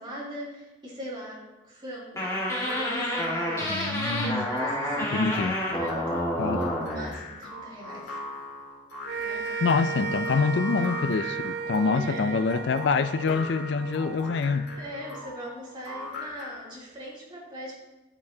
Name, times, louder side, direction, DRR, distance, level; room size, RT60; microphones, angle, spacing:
voice 1, 0.0-2.3 2.6-5.1 5.7-8.2 9.2-9.8 11.9-12.4 14.8-17.7, equal, 25° right, -7 dB, 2.9 m, -40 dB
sound 1, 2.2-7.1, left 1 dB, 15° left, 1.6 m, -29 dB
sound 2, 2.5-16.8, left 2 dB, 80° left, 2.5 m, -41 dB
voice 2, 3.7-4.5 5.1-5.6 6.4-6.6 9.6-14.7, left 4 dB, 65° left, 11 dB, 0.4 m, -26 dB
sound 3, 9.1-15.5, right 4 dB, 55° right, 0.4 m, -35 dB
12.0 x 6.6 x 2.8 m, 1.1 s
head